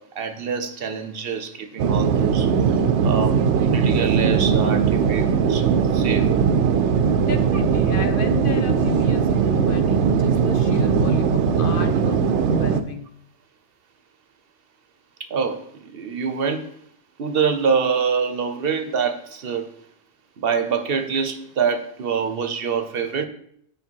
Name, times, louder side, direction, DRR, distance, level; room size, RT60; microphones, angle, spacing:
voice 1, 0.0-2.5 3.0-3.4 3.7-6.4 15.2-16.7 17.2-19.7 20.4-23.3, right 6 dB, 60° right, 0.9 m, -25 dB
sound 1, 1.8-12.8, right 6 dB, 90° right, 0.9 m, -19 dB
voice 2, 7.2-13.1, left 6 dB, 60° left, 0.7 m, -33 dB
8.6 x 4.9 x 4.5 m
omnidirectional pair, 1.2 m